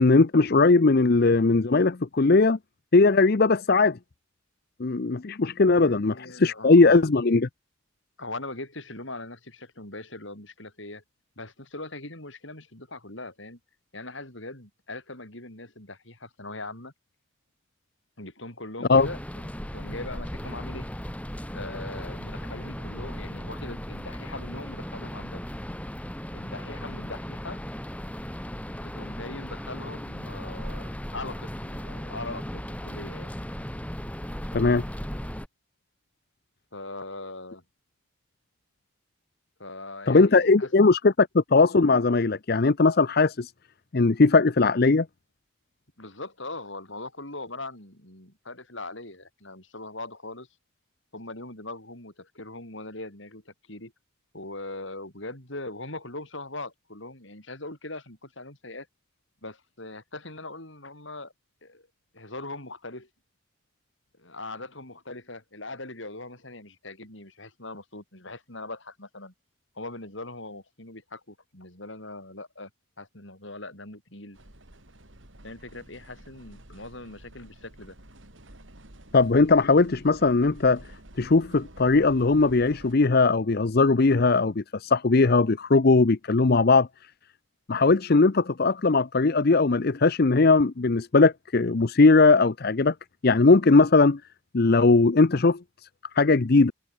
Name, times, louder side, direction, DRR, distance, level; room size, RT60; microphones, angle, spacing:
voice 1, 0.0-2.6 2.9-4.0 4.8-7.5 18.9-19.1 34.5-34.8 40.1-43.5 43.9-45.1 79.1-80.8 81.2-86.9 87.7-92.9 93.2-94.2 94.5-95.6 96.2-96.7, left 3 dB, 45° left, 0.6 m, -19 dB
voice 2, 5.7-6.8 8.2-11.0 11.4-13.6 13.9-16.9 18.2-20.9 21.5-25.4 26.3-27.6 28.8-33.3 36.7-37.6 39.6-40.7 46.0-50.5 51.1-53.9 54.3-58.9 59.4-61.3 61.6-61.9 62.1-63.1 64.2-69.3 69.8-72.7 73.0-74.4 75.4-78.0, left 2 dB, 60° left, 7.3 m, -40 dB
sound 1, 18.9-35.5, equal, 5° left, 2.3 m, -36 dB
sound 2, 74.3-82.9, right 1 dB, 65° right, 4.1 m, -49 dB
head